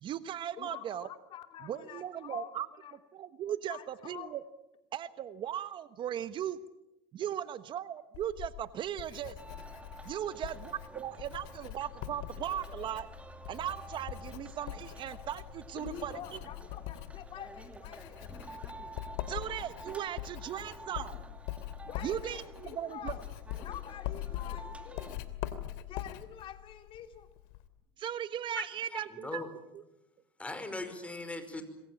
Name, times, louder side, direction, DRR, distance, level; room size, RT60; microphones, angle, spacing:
voice 1, 0.0-1.1 1.6-2.7 3.1-4.4 4.9-6.6 7.1-9.4 10.0-13.1 13.5-16.4 19.3-21.4 22.0-23.1 28.0-29.4, right 10 dB, 40° right, 13 dB, 1.2 m, -38 dB
voice 2, 0.6-2.5 2.8-3.0 3.7-4.4 15.7-18.2 21.9-23.2 23.6-25.3 25.9-27.3, left 10 dB, 45° left, 7 dB, 3.1 m, -47 dB
Writing, 8.1-27.7, left 13 dB, 70° left, 2.8 m, -43 dB
parkhaus rathaus galerie, 9.4-25.2, right 2 dB, 10° right, 2.5 m, -50 dB
voice 3, 28.9-29.5 30.4-31.6, left 2 dB, 10° left, 9 dB, 5.2 m, -39 dB
26.5 x 22.5 x 8.7 m, 0.91 s
supercardioid pair, 110°, 12 cm